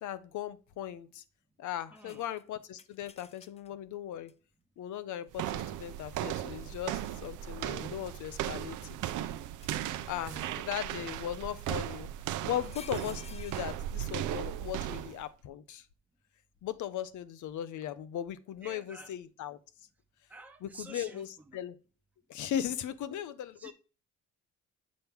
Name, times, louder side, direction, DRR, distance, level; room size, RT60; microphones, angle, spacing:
voice 1, 0.0-1.2 1.6-4.3 4.8-9.0 10.1-12.1 12.4-15.8 16.6-19.6 20.6-21.8 22.3-23.7, left 11 dB, 75° left, 0.7 m, -38 dB
sound 1, 1.9-3.7 4.3-4.4 6.4-7.0 7.9-9.0 9.6-10.3 11.9-12.0 12.4-13.9, left 5 dB, 20° left, 0.5 m, -53 dB
voice 2, 1.9-2.2 10.1-10.6 18.6-19.1 20.3-21.6 23.6-23.7, right 3 dB, 5° right, 0.8 m, -50 dB
sound 2, 5.3-15.2, right 12 dB, 85° right, 0.6 m, -37 dB
7.5 x 4.5 x 3.5 m
cardioid pair, 90°, 30 cm